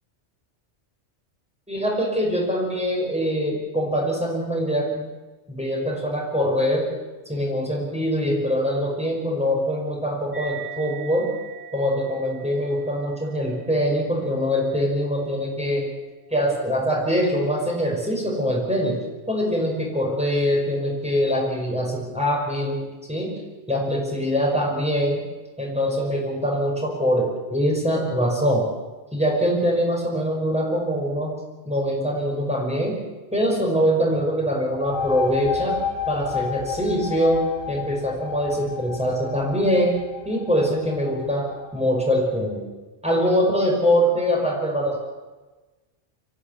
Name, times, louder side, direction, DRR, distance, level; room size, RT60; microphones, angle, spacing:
voice 1, 1.7-5.0 5.5-6.9 7.3-11.3 11.7-15.9 16.3-19.0 19.3-23.3 23.7-25.2 25.6-28.7 29.1-31.3 31.7-33.0 33.3-35.8 36.1-40.0 40.3-42.6 43.0-45.0, equal, 5° right, -2 dB, 5.4 m, -23 dB
sound 1, 10.3-17.2, right 7 dB, 65° right, 3.5 m, -43 dB
sound 2, 34.7-42.1, left 7 dB, 85° left, 3.9 m, -32 dB
25.0 x 14.5 x 8.3 m, 1.2 s
omnidirectional pair, 1.2 m